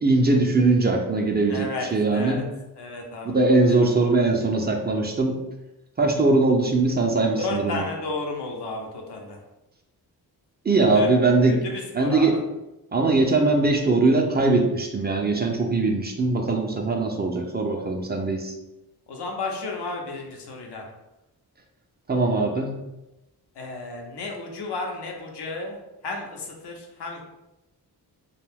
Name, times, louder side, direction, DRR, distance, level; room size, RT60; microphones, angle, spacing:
voice 1, 0.0-2.4 3.2-5.4 6.0-7.8 10.6-11.7 11.9-12.4 12.9-18.6 22.1-22.7, right 3 dB, 25° right, 2 dB, 0.4 m, -21 dB
voice 2, 1.5-1.9 2.1-2.4 2.8-3.9 7.4-9.4 10.8-11.1 11.5-12.4 19.1-20.9 23.6-27.2, left 3 dB, 85° left, 1 dB, 0.7 m, -33 dB
2.5 x 2.3 x 3.4 m, 0.96 s
cardioid pair, 80°, 39 cm